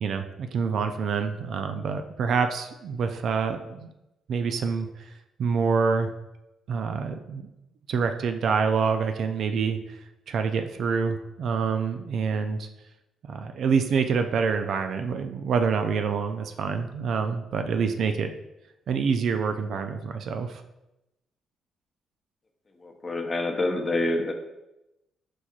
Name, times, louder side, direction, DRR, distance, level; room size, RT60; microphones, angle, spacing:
voice 1, 0.0-3.9 4.3-5.1 5.4-6.1 6.7-7.5 7.9-9.8 10.3-12.7 13.3-18.3 18.9-20.6, right 5 dB, 65° right, 7 dB, 0.4 m, -26 dB
voice 2, 23.0-24.3, left 2 dB, 30° left, 3 dB, 0.6 m, -26 dB
4.6 x 4.2 x 2.4 m, 0.91 s
cardioid pair, 90°, 0 cm